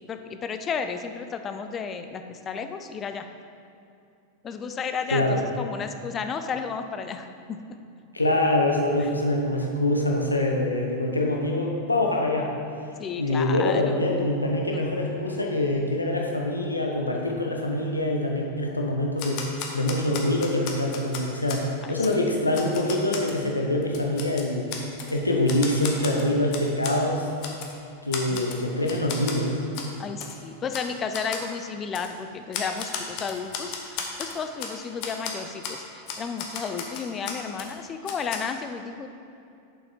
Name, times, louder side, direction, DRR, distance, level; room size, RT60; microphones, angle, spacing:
voice 1, 0.1-3.3 4.4-7.6 8.9-9.1 13.0-14.1 14.7-14.8 21.8-22.4 28.3-28.5 30.0-39.1, left 6 dB, 25° left, 7 dB, 0.5 m, -33 dB
voice 2, 8.1-12.5 13.2-19.4 19.7-24.7 25.1-27.3 28.0-29.6, left 1 dB, 80° left, 0 dB, 0.9 m, -25 dB
Typewriter, 19.2-21.6 22.0-22.2 22.5-23.4 23.8-25.1 25.5-27.0 27.4-27.7 28.1-28.6 28.9-29.4 29.7-29.9 30.2-30.3 30.7-30.9 31.1-31.5 31.9-32.1 32.5-34.7 35.0-35.3 35.6-35.8 36.1-37.7 38.1-38.4, left 6 dB, 45° left, 0.9 m, -34 dB
7.2 x 5.6 x 4.5 m, 2.6 s
figure-of-eight pair, 90°, 0 cm